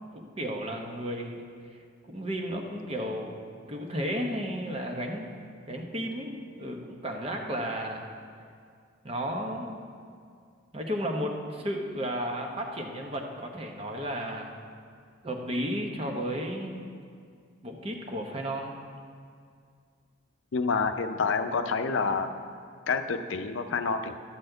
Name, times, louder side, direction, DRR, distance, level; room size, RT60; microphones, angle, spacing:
voice 1, 0.1-1.5 2.1-3.4 3.7-5.3 5.7-8.0 9.0-9.8 10.7-14.5 15.2-16.8 17.6-18.8, equal, 30° right, 2 dB, 1.0 m, -33 dB
voice 2, 20.5-22.3 22.9-24.1, left 4 dB, 80° left, 8 dB, 0.5 m, -28 dB
12.0 x 4.2 x 7.8 m, 2.2 s
head